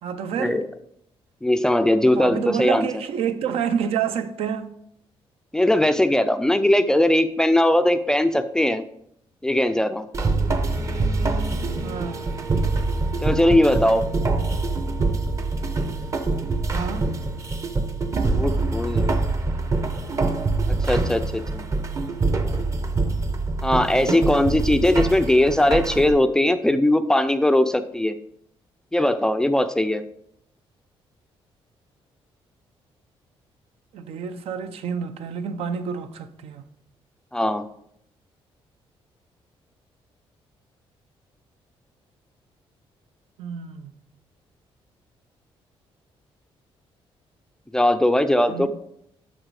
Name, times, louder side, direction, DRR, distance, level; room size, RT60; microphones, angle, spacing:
voice 1, 0.0-0.6 2.2-4.7 11.8-12.3 16.7-17.1 33.9-36.6 43.4-43.9 48.5-48.7, right 7 dB, 75° right, 0.7 m, -28 dB
voice 2, 1.4-2.9 5.5-8.8 9.4-10.1 13.2-14.1 18.3-19.2 20.9-21.7 23.6-28.2 28.9-30.0 37.3-37.6 47.7-48.7, left 1 dB, 5° left, 0.4 m, -20 dB
sound 1, 10.1-26.1, right 3 dB, 30° right, 0.7 m, -25 dB
11.5 x 4.0 x 4.7 m
cardioid pair, 160°, 10 cm